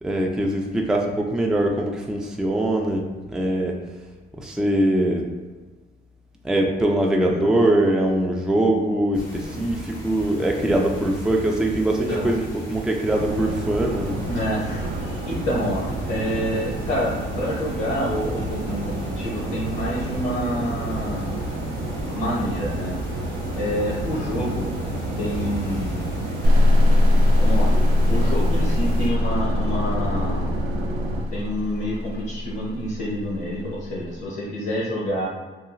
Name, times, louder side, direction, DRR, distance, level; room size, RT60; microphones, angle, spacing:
voice 1, 0.0-3.8 4.4-5.3 6.4-14.2, right 1 dB, 5° right, 0 dB, 0.3 m, -22 dB
sound 1, 9.1-29.1, right 1 dB, 90° left, 1.2 m, -37 dB
voice 2, 9.4-9.8 10.6-10.8 12.1-12.3 14.3-21.3 22.1-22.9 23.5-24.7 25.2-26.1 27.4-27.7 28.1-30.5 31.3-35.3, equal, 60° left, -6 dB, 0.8 m, -28 dB
sound 2, 13.1-31.2, right 1 dB, 80° right, 0.4 m, -30 dB
sound 3, 26.4-34.0, left 1 dB, 50° right, 0.8 m, -21 dB
2.8 x 2.3 x 2.5 m, 1.3 s
cardioid pair, 90°, 20 cm